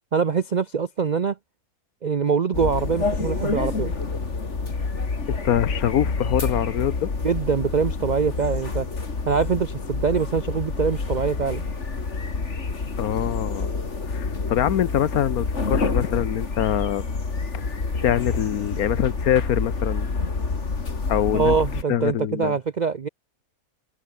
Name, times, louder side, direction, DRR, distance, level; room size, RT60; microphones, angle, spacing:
voice 1, 0.1-1.4 2.0-3.9 7.2-8.9 9.3-11.6 21.3-23.1, right 6 dB, 70° right, 0.4 m, -24 dB
sound 1, 2.5-21.8, left 4 dB, 45° left, 2.7 m, -28 dB
voice 2, 5.3-7.1 13.0-13.8 14.1-17.0 17.5-17.6 18.0-20.1 21.1-21.5 21.9-22.6, left 10 dB, 65° left, 1.3 m, -24 dB
omnidirectional pair, 1.7 m